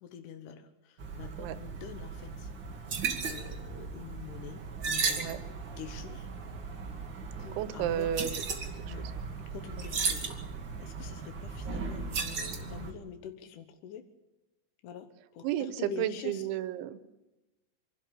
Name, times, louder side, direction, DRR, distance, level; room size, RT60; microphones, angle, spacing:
voice 1, 0.0-2.5 3.3-6.3 7.4-8.1 8.8-9.1 9.5-10.3 10.8-14.1 14.8-16.4, left 8 dB, 80° left, 8 dB, 1.8 m, -46 dB
sound 1, 1.0-12.9, right 5 dB, 65° right, 1.1 m, -36 dB
voice 2, 7.6-8.4 8.7-9.1 9.8-9.9 15.4-17.0, right 11 dB, 85° right, 14 dB, 3.3 m, -33 dB
26.5 x 12.5 x 8.7 m, 1.0 s
omnidirectional pair, 5.3 m